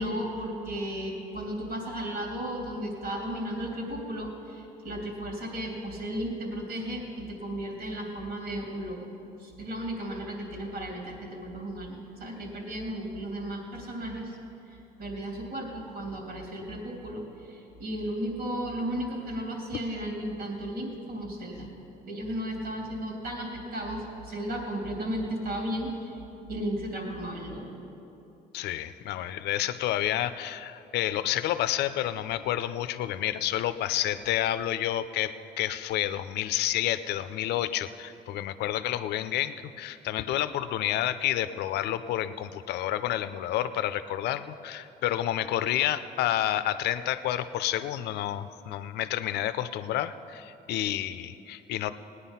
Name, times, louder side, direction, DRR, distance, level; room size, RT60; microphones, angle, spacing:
voice 1, 0.0-9.1 9.4-14.3 15.0-21.7 22.0-26.2 26.5-27.7, equal, 70° right, 0 dB, 3.2 m, -34 dB
voice 2, 28.5-51.9, left 12 dB, 75° left, 12 dB, 0.6 m, -29 dB
18.0 x 9.8 x 5.7 m, 3.0 s
cardioid pair, 110°, 17 cm